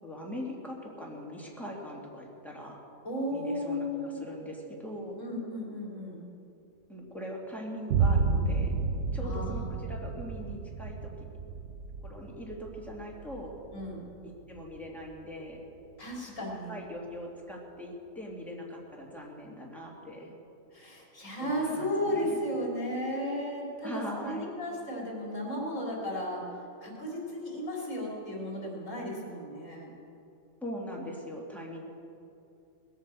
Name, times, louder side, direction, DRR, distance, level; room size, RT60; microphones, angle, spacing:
voice 1, 0.0-2.8 3.3-5.2 6.9-8.7 9.1-11.1 12.0-13.5 14.5-15.6 16.7-20.3 21.4-22.4 23.8-24.4 30.6-31.8, equal, ahead, -3 dB, 2.6 m, -41 dB
voice 2, 3.0-4.2 5.2-6.2 9.2-9.7 13.7-14.0 16.0-16.8 20.7-26.5 26.8-29.9, equal, 70° left, -3 dB, 3.9 m, -34 dB
Boom, 7.9-15.7, right 4 dB, 60° right, 0.8 m, -32 dB
19.5 x 9.0 x 7.7 m, 2.7 s
omnidirectional pair, 1.4 m